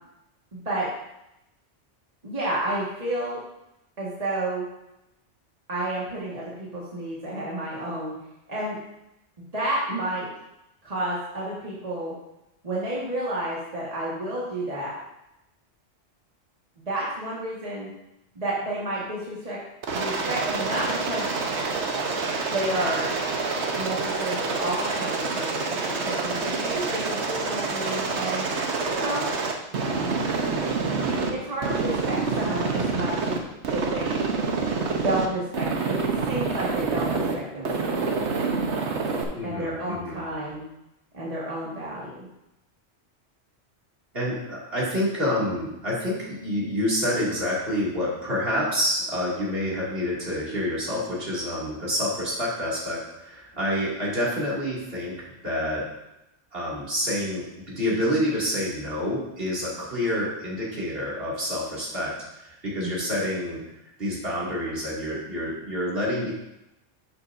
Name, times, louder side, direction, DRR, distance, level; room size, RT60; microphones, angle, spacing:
voice 1, 0.5-0.9 2.2-3.4 4.0-4.6 5.7-8.1 8.5-8.8 9.5-10.3 10.8-12.1 12.6-15.0 16.8-17.9 18.4-19.6 19.9-21.3 22.5-23.1 23.8-28.5 28.9-29.3 30.9-33.4 33.7-34.2 34.8-38.0 39.4-40.6 41.1-42.3 62.8-63.1, right 1 dB, 30° right, -7 dB, 1.9 m, -31 dB
Aircraft, 19.8-31.3 31.6-33.4 33.6-35.3 35.5-37.3 37.6-39.2, right 4 dB, 70° right, 1.3 m, -27 dB
voice 2, 39.4-40.2 44.1-55.9 56.5-63.6 64.0-66.3, equal, 50° right, -6 dB, 2.8 m, -28 dB
11.5 x 7.2 x 2.7 m, 0.88 s
omnidirectional pair, 1.2 m